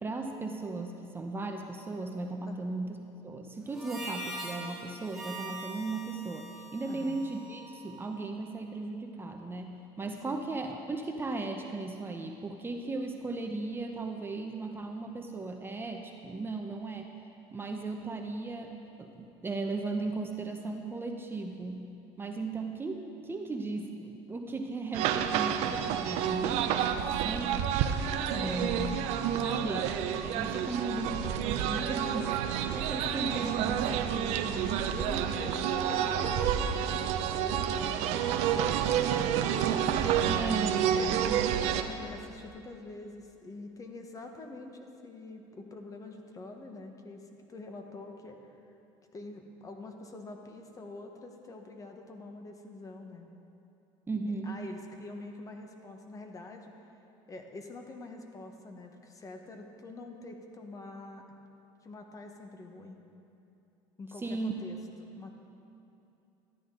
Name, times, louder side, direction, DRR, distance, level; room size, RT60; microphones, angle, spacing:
voice 1, 0.0-3.0 3.2-17.1 17.5-21.9 22.2-27.7 28.4-28.9 29.4-34.8 40.3-41.6 54.1-54.6 64.2-64.5, right 3 dB, 20° right, 3 dB, 0.8 m, -36 dB
Harmonica, 3.7-8.3, right 1 dB, 5° right, 1.9 m, -43 dB
voice 2, 6.9-7.2 10.2-10.4 28.3-28.9 34.9-39.6 41.6-48.7 49.1-53.3 54.4-56.7 57.3-61.2 61.8-63.0 64.0-64.8 65.2-65.4, left 2 dB, 30° left, 4 dB, 1.2 m, -45 dB
sound 1, 24.9-41.8, right 9 dB, 70° right, 0.6 m, -29 dB
13.0 x 9.3 x 3.8 m, 2.8 s
supercardioid pair, 95°, 12 cm